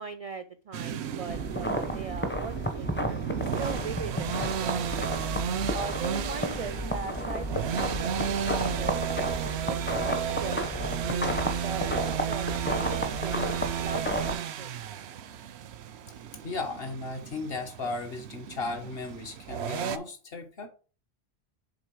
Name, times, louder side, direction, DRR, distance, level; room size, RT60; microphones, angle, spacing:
voice 1, 0.0-5.1 5.7-9.0 9.7-9.8 10.1-14.8, right 5 dB, 55° right, 11 dB, 0.4 m, -40 dB
sound 1, 0.7-20.0, right 8 dB, 80° right, 0.8 m, -33 dB
sound 2, 1.3-14.4, equal, 15° left, 0.6 m, -32 dB
sound 3, 5.9-15.2, left 3 dB, 85° left, 1.5 m, -47 dB
voice 2, 16.4-20.7, left 3 dB, 65° left, 4 dB, 1.5 m, -35 dB
7.2 x 3.7 x 4.7 m, 0.37 s
omnidirectional pair, 1.1 m